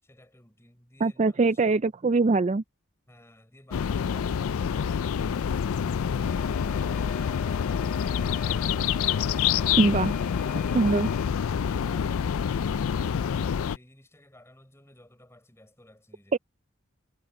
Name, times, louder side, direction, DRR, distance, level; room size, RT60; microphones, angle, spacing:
voice 1, 0.0-1.8 11.6-16.4, left 1 dB, 10° left, 5.9 m, -54 dB
voice 2, 1.0-2.6 9.8-10.1 10.7-11.1 16.3-16.4, right 3 dB, 30° right, 0.4 m, -22 dB
sound 1, 3.7-13.8, left 7 dB, 75° left, 0.4 m, -27 dB
sound 2, 6.3-11.3, left 6 dB, 35° left, 0.9 m, -43 dB
head